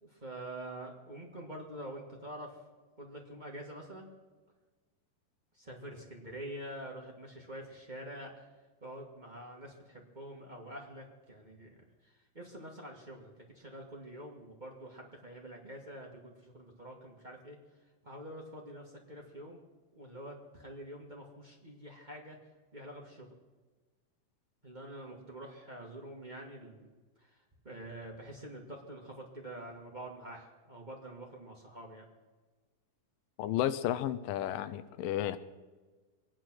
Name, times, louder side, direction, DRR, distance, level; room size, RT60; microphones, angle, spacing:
voice 1, 0.0-2.6 3.0-4.1 5.5-8.3 8.8-17.6 18.0-19.6 19.9-22.4 22.7-23.3 24.6-26.9 27.2-32.0, right 1 dB, 35° right, -1 dB, 0.7 m, -46 dB
voice 2, 33.4-35.4, left 12 dB, 90° left, 13 dB, 2.4 m, -32 dB
23.5 x 9.8 x 6.1 m, 1.3 s
omnidirectional pair, 3.9 m